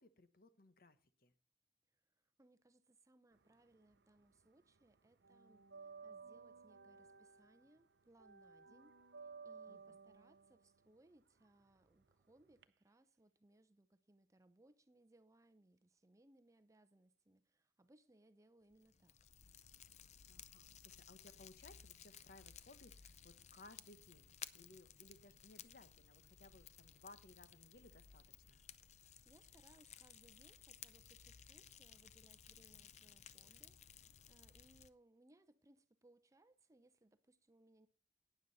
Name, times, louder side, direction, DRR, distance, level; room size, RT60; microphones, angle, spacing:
voice 1, 0.0-1.3 9.7-10.0 20.3-28.6, left 2 dB, 55° left, 1.0 m, -62 dB
voice 2, 2.4-19.1 28.8-37.9, right 1 dB, 20° right, 0.6 m, -70 dB
sound 1, 3.4-4.5 4.7-12.6, right 5 dB, 75° right, 0.7 m, -58 dB
Fire, 18.7-34.9, left 8 dB, 40° left, 0.5 m, -58 dB
12.0 x 9.3 x 4.1 m
head